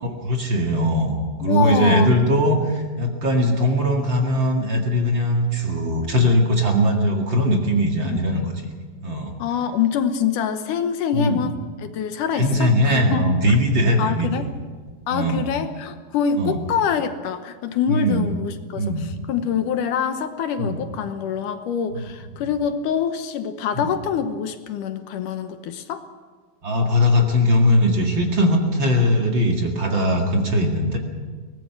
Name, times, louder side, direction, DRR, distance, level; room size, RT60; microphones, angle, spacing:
voice 1, 0.0-8.5 9.0-9.3 11.1-11.4 12.4-14.5 15.1-15.4 16.4-16.6 17.9-18.3 18.8-19.1 20.6-20.8 22.0-22.1 22.4-22.5 23.7-23.9 26.6-31.0, equal, 40° right, 1 dB, 2.3 m, -20 dB
voice 2, 1.4-2.2 8.0-8.2 9.4-13.3 14.0-14.5 15.1-26.1, left 7 dB, 75° left, 8 dB, 2.5 m, -25 dB
23.0 x 18.5 x 6.0 m, 1.5 s
omnidirectional pair, 3.8 m